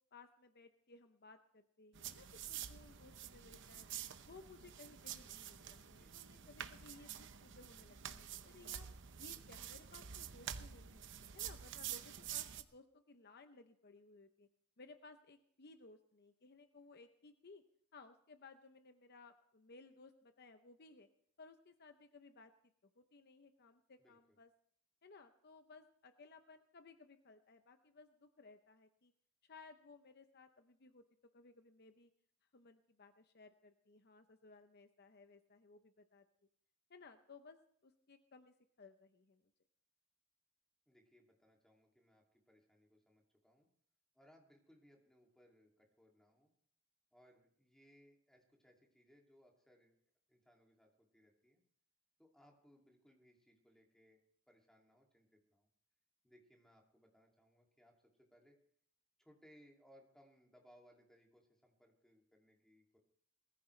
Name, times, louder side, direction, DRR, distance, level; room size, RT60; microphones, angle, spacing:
voice 1, 0.1-3.9 4.3-8.9 9.2-11.0 11.3-14.5 14.8-17.6 17.9-21.1 21.4-22.5 23.0-24.5 25.0-29.1 29.4-31.0 31.3-32.1 32.5-36.2 36.9-37.6 37.8-39.4, left 3 dB, 45° left, 8 dB, 0.7 m, -60 dB
sound 1, 2.0-12.6, right 9 dB, 55° right, 0.8 m, -48 dB
voice 2, 5.8-6.2 24.0-24.4 40.9-43.7 44.1-46.5 47.1-50.0 50.3-51.6 52.2-54.2 54.5-55.7 56.2-58.6 59.2-63.0, equal, ahead, 0 dB, 2.5 m, -68 dB
20.5 x 14.5 x 3.2 m, 0.65 s
head